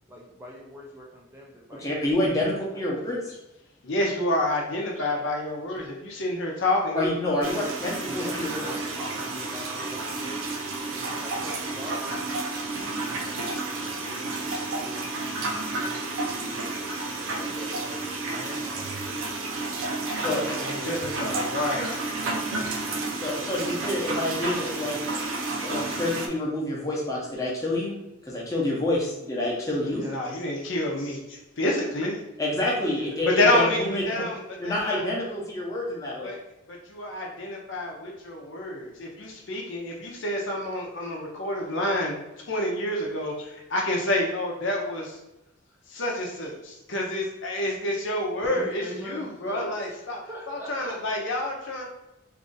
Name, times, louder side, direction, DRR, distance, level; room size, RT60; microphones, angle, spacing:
voice 1, 0.1-2.8 8.1-12.0 12.5-14.3 14.6-19.3 20.1-23.1 29.9-30.2 48.4-51.0, equal, 10° right, -3 dB, 0.4 m, -43 dB
voice 2, 1.8-3.2 6.9-8.7 20.2-20.4 23.2-25.0 25.3-28.0 28.2-30.0 32.4-34.2 34.6-36.3, left 1 dB, 15° left, -4 dB, 0.7 m, -28 dB
voice 3, 3.8-7.2 20.6-22.0 30.0-32.2 33.2-34.4 34.6-35.0 36.2-36.4 36.7-42.1 42.5-45.2 45.9-50.2 50.5-51.8, left 1 dB, 65° left, -1 dB, 0.7 m, -28 dB
sound 1, 7.4-26.3, right 3 dB, 70° right, 0.4 m, -31 dB
2.7 x 2.5 x 3.9 m, 0.93 s
head